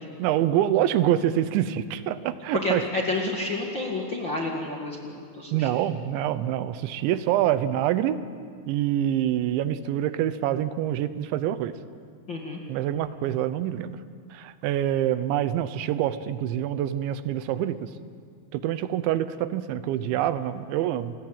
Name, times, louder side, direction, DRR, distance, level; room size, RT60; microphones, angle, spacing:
voice 1, 0.2-2.8 5.5-8.3 8.7-11.7 12.7-14.0 14.3-17.9 18.5-21.1, right 11 dB, 85° right, 13 dB, 3.2 m, -26 dB
voice 2, 2.5-5.7 12.3-12.6, left 2 dB, 40° left, -1 dB, 1.7 m, -30 dB
28.5 x 21.0 x 8.9 m, 2.1 s
omnidirectional pair, 5.2 m